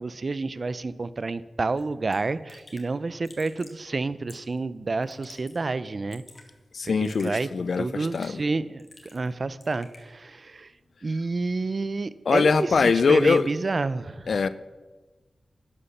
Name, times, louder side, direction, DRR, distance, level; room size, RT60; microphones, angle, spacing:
voice 1, 0.0-6.2 7.0-7.5 7.8-8.9 9.1-10.7 11.0-14.3, right 3 dB, 50° right, 16 dB, 0.6 m, -29 dB
Raindrop / Drip, 1.8-1.9 2.1-2.2 2.5-2.9 3.2-3.8 4.3-4.6 5.0-5.6 5.9-6.5 7.0-7.3 8.0-8.4 8.8-9.3 9.6-10.0, left 2 dB, 45° left, 2.5 m, -50 dB
voice 2, 6.7-8.4 12.3-13.5 14.3-14.5, left 5 dB, 75° left, 15 dB, 0.6 m, -22 dB
12.0 x 9.9 x 7.2 m, 1.3 s
wide cardioid pair, 80°, 0 cm